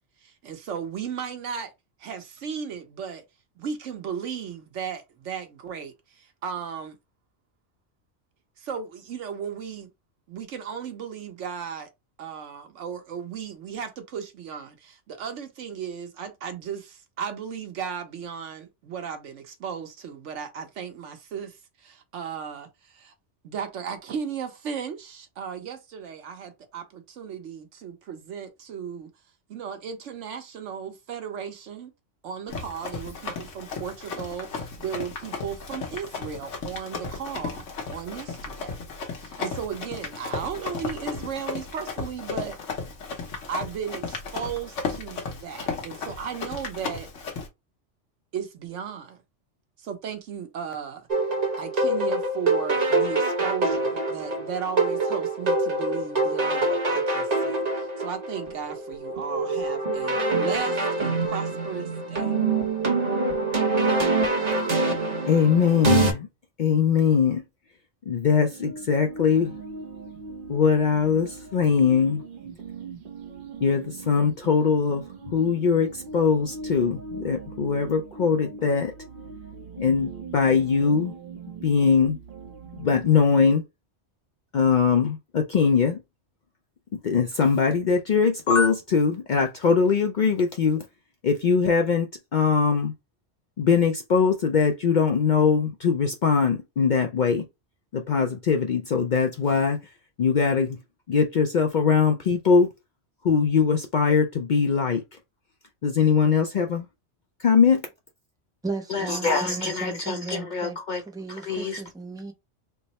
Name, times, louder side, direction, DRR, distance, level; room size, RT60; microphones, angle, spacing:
voice 1, 0.2-1.7 2.0-3.2 3.6-7.0 8.6-9.9 10.3-11.9 12.2-23.1 23.4-29.1 29.5-31.9 32.2-37.6 37.9-38.7 39.2-42.6 43.5-47.1 48.3-49.2 49.8-51.1 51.6-62.4, right 7 dB, 85° right, 1.1 m, -35 dB
Run, 32.5-47.5, left 4 dB, 85° left, 1.3 m, -35 dB
sound 1, 51.1-66.1, right 2 dB, 35° right, 1.0 m, -25 dB
voice 2, 65.3-66.3 66.6-67.4 68.1-69.6 70.5-72.2 73.6-75.0 75.3-78.9 79.8-81.1 81.6-82.2 82.8-83.6 84.5-86.0 87.0-90.8 91.2-92.9 93.6-97.4 97.9-99.8 100.2-100.8 101.1-102.7 103.2-105.0 105.8-106.9 107.4-107.8 108.9-111.0 111.4-111.8, left 6 dB, 60° left, 0.5 m, -22 dB
sound 2, 68.4-83.2, right 3 dB, 55° right, 0.7 m, -40 dB
voice 3, 108.6-112.3, right 3 dB, 5° right, 0.5 m, -35 dB
3.3 x 2.0 x 4.0 m
omnidirectional pair, 1.2 m